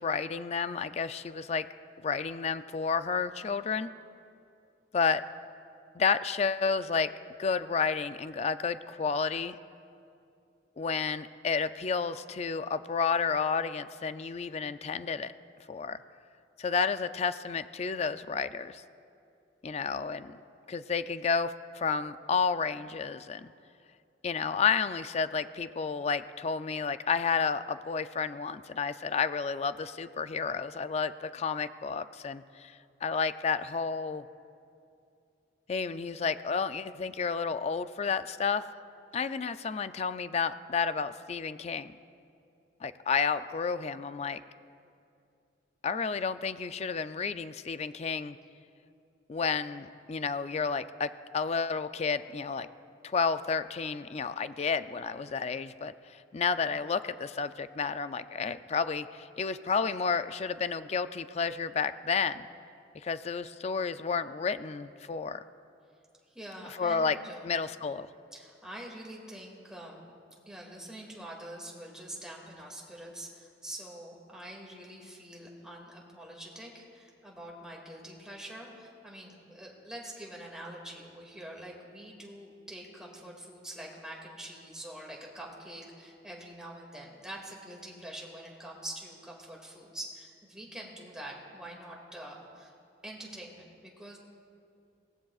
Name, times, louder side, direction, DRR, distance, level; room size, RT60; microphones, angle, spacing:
voice 1, 0.0-1.7 2.0-3.9 4.9-5.2 5.9-7.1 7.4-9.5 10.8-15.3 15.7-16.0 16.6-18.8 19.6-20.4 20.7-23.5 24.2-34.2 35.7-38.6 39.1-41.9 42.8-44.4 45.8-48.4 49.3-52.7 53.0-62.5 63.0-65.4 66.8-67.2 67.4-68.1, left 5 dB, 35° left, 12 dB, 0.4 m, -31 dB
voice 2, 66.3-67.5 68.3-70.1 70.5-92.8 93.0-94.2, right 1 dB, 5° right, -2 dB, 2.2 m, -45 dB
23.0 x 17.5 x 2.4 m, 2.5 s
head